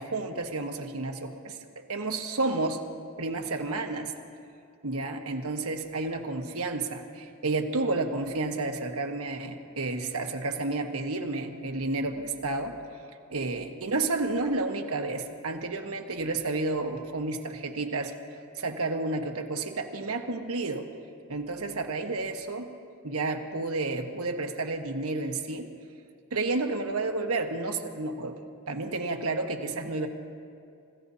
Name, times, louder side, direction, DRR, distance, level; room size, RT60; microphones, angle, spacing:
voice 1, 0.0-1.6 1.9-2.8 3.2-4.1 4.8-12.8 13.3-18.1 18.6-20.9 21.3-22.7 23.0-25.7 26.3-28.4 28.7-30.1, right 3 dB, 75° right, 4 dB, 1.2 m, -31 dB
29.5 x 16.0 x 2.8 m, 2.4 s
head